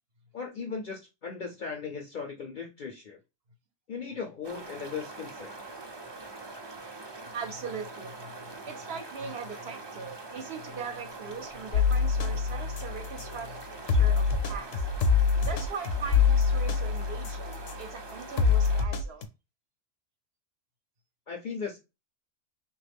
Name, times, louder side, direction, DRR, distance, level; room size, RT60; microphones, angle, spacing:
voice 1, 0.3-3.2 3.9-5.5 21.3-21.8, left 5 dB, 55° left, 0.5 m, -37 dB
sound 1, 4.4-18.8, right 3 dB, 45° right, 0.3 m, -43 dB
voice 2, 7.3-8.3 8.7-14.9 15.4-19.3, right 5 dB, 60° right, 0.8 m, -40 dB
sound 2, 11.7-13.4 13.9-17.9 18.4-19.3, left 6 dB, 80° left, 1.0 m, -25 dB
3.2 x 2.3 x 3.4 m
omnidirectional pair, 1.3 m